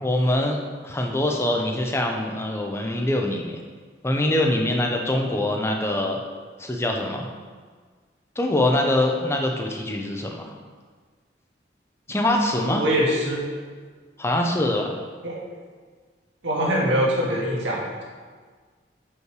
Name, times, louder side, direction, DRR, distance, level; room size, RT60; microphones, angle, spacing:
voice 1, 0.0-3.6 4.0-6.2 6.6-7.3 8.4-10.5 12.1-12.8 14.2-14.9, left 1 dB, 15° left, 2 dB, 0.7 m, -24 dB
voice 2, 12.6-13.4 15.2-15.4 16.4-18.0, equal, 90° right, -4 dB, 1.9 m, -23 dB
6.4 x 5.5 x 4.7 m, 1.6 s
head